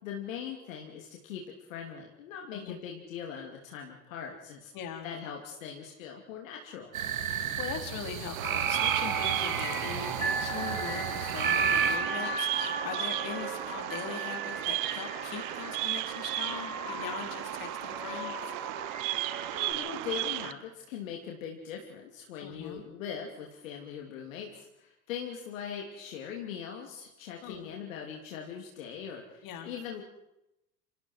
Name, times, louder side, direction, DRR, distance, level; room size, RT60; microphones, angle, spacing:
voice 1, 0.0-4.7 5.0-6.9 19.5-30.0, left 7 dB, 70° left, 0 dB, 3.1 m, -41 dB
voice 2, 4.7-5.1 7.2-18.5 22.4-22.8 27.4-27.7 29.4-29.7, left 8 dB, 50° left, 4 dB, 4.2 m, -41 dB
sound 1, 6.9-12.0, right 8 dB, 80° right, 2.2 m, -33 dB
sound 2, 8.4-19.7, right 4 dB, 20° right, 5.9 m, -35 dB
Bird vocalization bird call bird song, 8.4-20.5, right 18 dB, 50° right, 1.0 m, -36 dB
28.5 x 26.5 x 4.7 m, 0.87 s
hypercardioid pair, 75°, 41 cm